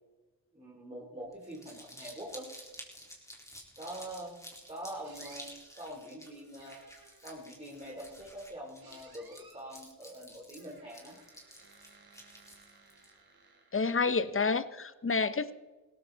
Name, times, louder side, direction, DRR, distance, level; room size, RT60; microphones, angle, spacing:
voice 1, 0.5-2.5 3.8-4.3 4.7-6.8 7.2-11.2, right 1 dB, 15° right, -3 dB, 3.5 m, -44 dB
Crumpling crinkling, 1.3-13.1, equal, 10° left, 3.9 m, -51 dB
sound 1, 5.0-5.6 6.6-7.3 8.8-9.8 10.6-14.0, right 3 dB, 70° right, 3.2 m, -59 dB
voice 2, 13.7-15.5, left 4 dB, 35° left, 14 dB, 0.9 m, -29 dB
17.0 x 14.0 x 4.0 m, 1.2 s
cardioid pair, 65°, 38 cm